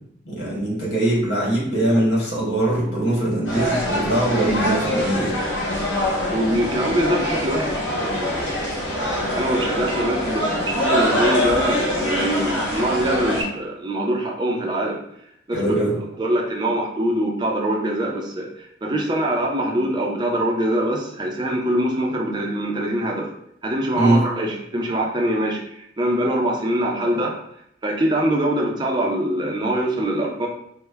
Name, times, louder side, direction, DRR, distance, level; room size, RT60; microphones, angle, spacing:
voice 1, 0.2-5.3 15.5-15.9 23.9-24.2, right 1 dB, 60° left, -6 dB, 1.5 m, -21 dB
sound 1, 3.5-13.4, equal, 80° left, 1.0 m, -24 dB
voice 2, 6.3-8.6 8.9-15.0 15.5-15.8 16.2-23.3 23.6-27.4 27.8-30.5, right 1 dB, 25° right, 0 dB, 0.4 m, -23 dB
3.3 x 2.1 x 3.3 m, 0.72 s
head